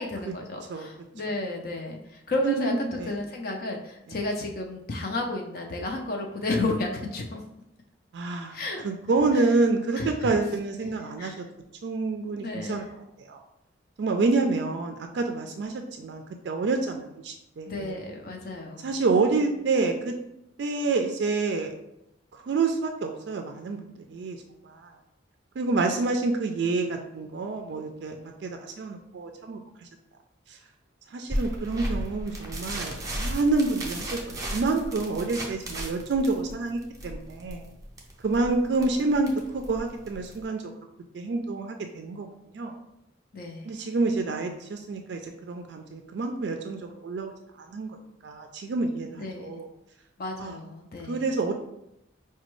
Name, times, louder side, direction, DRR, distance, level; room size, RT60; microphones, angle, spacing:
voice 1, 0.0-7.4 8.5-8.9 9.3-9.4 9.9-10.4 11.2-11.4 12.3-12.8 17.7-18.9 43.3-43.9 49.2-49.5 50.2-51.3, left 2 dB, 50° left, 1 dB, 0.4 m, -32 dB
voice 2, 2.4-3.1 4.1-4.2 8.1-8.6 8.8-11.5 11.8-12.8 13.2-13.4 14.0-18.0 18.8-20.2 20.6-21.7 22.4-23.8 24.1-24.9 25.6-29.9 30.5-30.6 31.1-37.6 38.2-40.6 41.1-42.3 42.5-42.7 43.6-47.3 47.6-48.0 48.2-49.7 50.4-50.6 51.0-51.5, right 3 dB, 65° right, 4 dB, 0.3 m, -28 dB
sound 1, 31.3-40.4, right 1 dB, 20° right, 0.6 m, -35 dB
5.1 x 2.2 x 3.0 m, 0.83 s
head